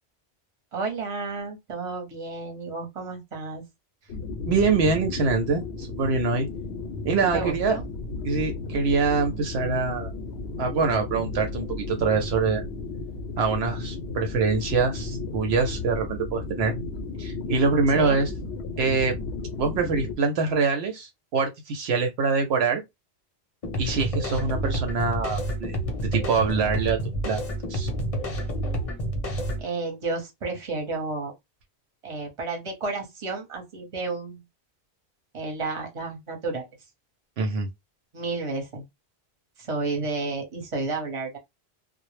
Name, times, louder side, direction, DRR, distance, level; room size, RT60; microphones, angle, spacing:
voice 1, 0.7-3.6 7.3-7.8 17.9-18.2 29.6-31.3 32.0-34.4 35.3-36.6 38.1-38.8 39.6-41.4, right 3 dB, 35° right, 0.8 m, -31 dB
sound 1, 4.1-20.2, left 3 dB, 70° left, 0.8 m, -34 dB
voice 2, 4.5-6.5 7.0-7.8 8.2-10.1 10.6-12.6 13.4-16.7 17.2-18.3 18.8-19.2 19.6-22.8 23.8-25.7 26.1-27.0 27.2-27.4 27.7-27.9 37.4-37.7, right 4 dB, 75° right, 0.8 m, -24 dB
sound 2, 23.6-29.6, right 1 dB, 40° left, 0.7 m, -29 dB
2.0 x 2.0 x 3.0 m
omnidirectional pair, 1.1 m